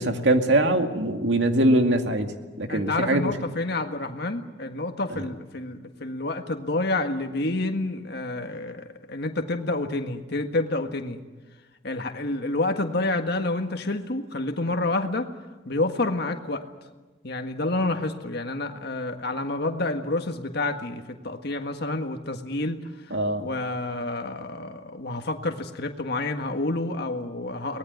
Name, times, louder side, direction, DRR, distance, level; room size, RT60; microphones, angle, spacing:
voice 1, 0.0-2.3 2.6-3.2 5.1-5.3 23.1-23.5, right 1 dB, 75° right, 5 dB, 2.2 m, -22 dB
voice 2, 2.7-11.2 11.8-15.3 15.6-16.6 17.2-22.8 23.1-27.8, left 2 dB, 60° left, 5 dB, 1.6 m, -29 dB
23.5 x 18.5 x 9.5 m, 1.2 s
head